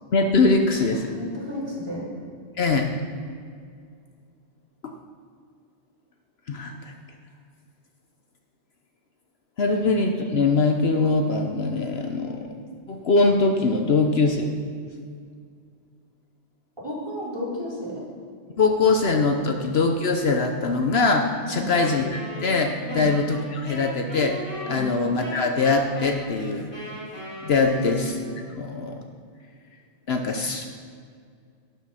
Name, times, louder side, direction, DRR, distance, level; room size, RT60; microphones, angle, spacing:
voice 1, 0.1-1.1 2.6-2.9 4.8-4.9 6.5-6.9 9.6-12.5 12.9-14.5 18.6-24.4 24.7-26.7 27.4-28.1 28.5-29.0 30.1-30.7, left 3 dB, 60° left, 4 dB, 1.1 m, -22 dB
voice 2, 0.9-2.1 9.7-9.8 16.8-18.0 21.5-21.7 22.9-23.1 24.7-24.9 27.6-27.8 28.1-28.2, left 1 dB, 25° right, -7 dB, 4.2 m, -33 dB
Wind instrument woodwind instrument, 21.7-28.5, left 1 dB, 45° left, 4.2 m, -38 dB
12.0 x 10.5 x 5.7 m, 2.2 s
omnidirectional pair, 1.2 m